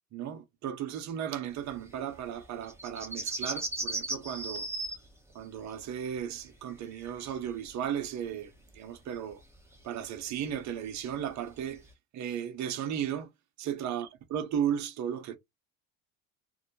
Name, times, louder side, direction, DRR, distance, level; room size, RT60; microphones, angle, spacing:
voice 1, 0.1-4.7 5.3-9.4 9.8-11.8 12.1-13.3 13.6-15.4, right 9 dB, 40° right, 0.6 m, -35 dB
sound 1, 1.7-8.0 8.3-11.9, right 2 dB, 5° right, 0.7 m, -38 dB
2.2 x 2.1 x 2.7 m
supercardioid pair, 90°, 42 cm